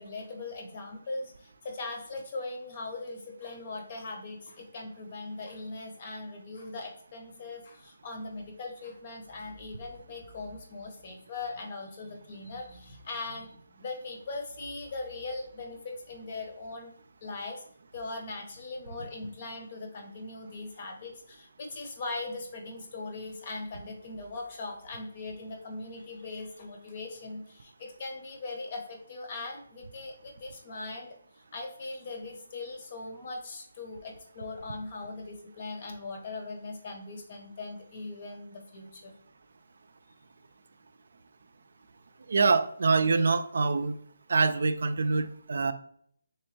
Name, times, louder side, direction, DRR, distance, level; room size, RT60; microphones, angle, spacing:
voice 1, 0.0-16.9 17.2-17.6 17.9-31.1 31.5-39.1, left 3 dB, 40° left, 3 dB, 0.8 m, -40 dB
voice 2, 42.3-44.0 44.3-45.7, right 4 dB, 65° right, 11 dB, 0.3 m, -25 dB
3.3 x 3.0 x 3.0 m, 0.64 s
hypercardioid pair, 160°, 0 cm